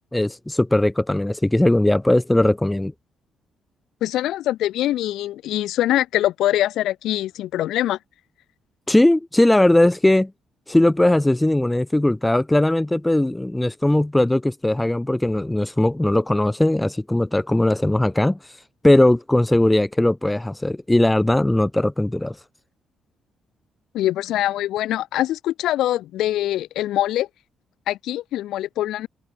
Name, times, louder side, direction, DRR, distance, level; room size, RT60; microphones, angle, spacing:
voice 1, 0.1-2.9 8.9-10.3 10.7-18.4 18.8-22.4, left 1 dB, 10° left, 1.3 m, -19 dB
voice 2, 4.0-8.0 23.9-27.3 27.9-29.1, left 13 dB, 85° left, 1.0 m, -23 dB
open air
cardioid pair, 90°, 0 cm